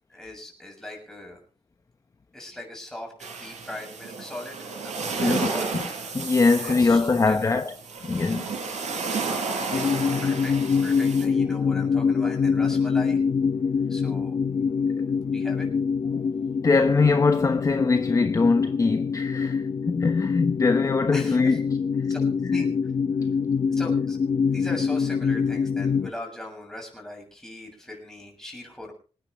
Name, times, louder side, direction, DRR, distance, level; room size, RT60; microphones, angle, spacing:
voice 1, 0.1-1.4 2.3-4.7 5.0-5.7 6.6-7.6 9.6-9.9 10.2-13.2 13.9-14.4 15.3-15.7 21.1-21.6 22.1-22.7 23.7-28.9, left 1 dB, 5° left, 7.2 m, -39 dB
sound 1, 3.2-11.3, right 4 dB, 85° right, 7.4 m, -32 dB
voice 2, 5.2-5.8 6.1-7.7 8.0-8.5 16.1-16.2 16.6-21.6 22.0-22.1 22.4-22.6, left 4 dB, 30° left, 1.0 m, -22 dB
sound 2, 9.7-26.1, left 6 dB, 50° left, 1.7 m, -25 dB
27.0 x 9.8 x 3.2 m
wide cardioid pair, 170°, 12 cm